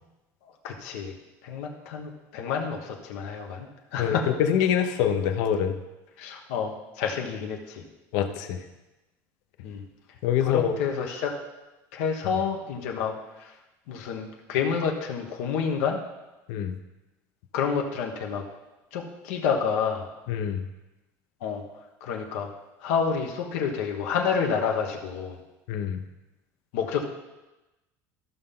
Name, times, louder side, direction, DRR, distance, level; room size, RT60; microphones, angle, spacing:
voice 1, 0.4-1.1 1.4-4.2 6.2-7.8 9.6-9.8 10.4-11.3 11.9-13.5 13.9-16.0 17.5-18.4 18.9-20.1 21.4-21.6 22.0-22.5 22.8-25.4 26.7-27.0, left 6 dB, 85° left, 1 dB, 1.3 m, -29 dB
voice 2, 4.0-5.7 8.1-8.6 10.2-10.7 16.5-16.7 20.3-20.6 25.7-26.0, left 9 dB, 65° left, 8 dB, 0.8 m, -25 dB
14.0 x 5.6 x 3.8 m, 1.1 s
cardioid pair, 170°, 7 cm